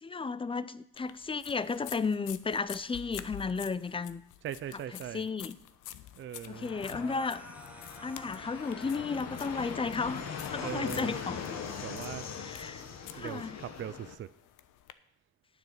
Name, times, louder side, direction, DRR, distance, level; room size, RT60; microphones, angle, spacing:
voice 1, 0.0-4.2 5.1-5.6 6.5-7.4 8.0-10.2 10.5-11.4 12.3-12.8 13.1-13.6, left 4 dB, 20° left, 16 dB, 0.4 m, -33 dB
sound 1, 1.0-14.9, left 13 dB, 90° left, 0.6 m, -49 dB
voice 2, 4.4-5.3 6.2-7.2 10.6-11.1 11.8-12.3 12.6-12.7 13.1-14.3, right 10 dB, 40° right, 14 dB, 0.4 m, -40 dB
Fixed-wing aircraft airplane, 6.5-14.1, left 6 dB, 60° left, 1.3 m, -41 dB
sound 2, 7.0-12.6, equal, 5° right, 1.1 m, -54 dB
9.3 x 7.5 x 6.0 m, 0.74 s
cardioid pair, 90°, 30 cm